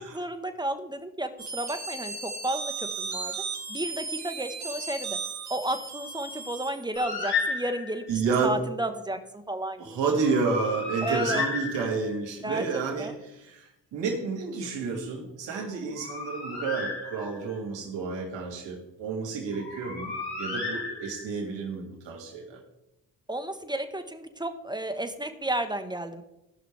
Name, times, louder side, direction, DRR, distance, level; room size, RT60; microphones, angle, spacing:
voice 1, 0.0-3.3 3.7-5.2 5.5-10.2 11.0-11.4 12.4-13.1 23.3-26.2, right 1 dB, 10° right, 8 dB, 1.3 m, -33 dB
sound 1, 1.4-7.1, right 4 dB, 40° right, 1.6 m, -36 dB
Bird, 7.0-8.1 10.2-12.3 15.7-17.6 19.5-21.4, left 4 dB, 60° left, 4.0 m, -33 dB
voice 2, 8.1-8.6 9.8-22.6, right 4 dB, 80° right, 0 dB, 2.4 m, -30 dB
17.0 x 6.0 x 3.4 m, 0.91 s
supercardioid pair, 50°, 43 cm